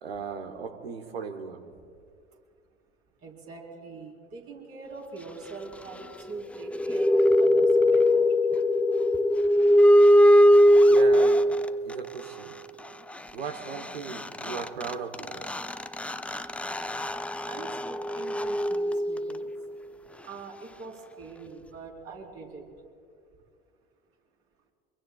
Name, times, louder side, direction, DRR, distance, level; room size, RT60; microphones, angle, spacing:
voice 1, 0.0-1.6 10.9-11.4 11.8-12.5 13.3-15.5, right 5 dB, 85° right, 6 dB, 1.0 m, -37 dB
voice 2, 3.2-8.3 17.5-19.5 20.2-22.6, right 4 dB, 50° right, -1 dB, 4.0 m, -43 dB
sound 1, 6.6-11.9 13.8-13.9 14.1-19.6, equal, 5° left, 0.4 m, -21 dB
24.0 x 22.5 x 2.3 m, 2.2 s
hypercardioid pair, 70°, 30 cm